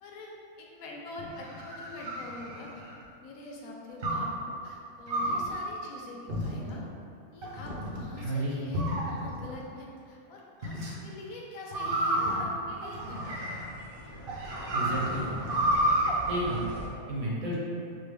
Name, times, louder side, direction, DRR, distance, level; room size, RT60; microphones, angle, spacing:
voice 1, 0.0-2.7 3.2-6.8 7.3-13.5 14.4-14.6, left 2 dB, 80° left, -2 dB, 1.1 m, -44 dB
sound 1, 1.2-3.0 4.0-4.4 5.1-5.5 6.3-6.8 7.4-8.0 8.7-9.5 10.6-10.9 11.7-13.8 14.3-16.1, right 1 dB, 50° right, 0.7 m, -30 dB
voice 2, 8.2-8.5 14.7-15.3 16.3-16.7 17.1-17.6, right 1 dB, 80° right, -5 dB, 1.3 m, -31 dB
sound 2, 12.7-16.9, equal, 30° left, 0.4 m, -43 dB
6.0 x 2.0 x 3.3 m, 2.5 s
omnidirectional pair, 1.5 m